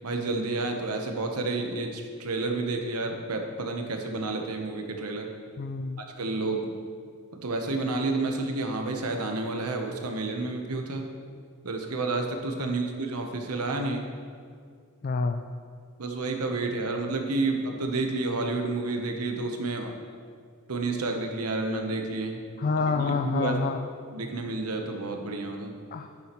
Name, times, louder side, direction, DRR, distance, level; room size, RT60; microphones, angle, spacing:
voice 1, 0.0-5.3 6.0-6.7 7.3-11.1 11.6-14.1 16.0-20.0 20.7-22.4 22.7-23.6 24.1-25.7, right 3 dB, 90° right, 4 dB, 1.0 m, -30 dB
voice 2, 5.6-6.0 12.6-12.8 15.0-15.4 22.6-23.8 25.9-26.1, left 4 dB, 40° left, 6 dB, 0.3 m, -28 dB
11.0 x 7.2 x 3.1 m, 2.1 s
head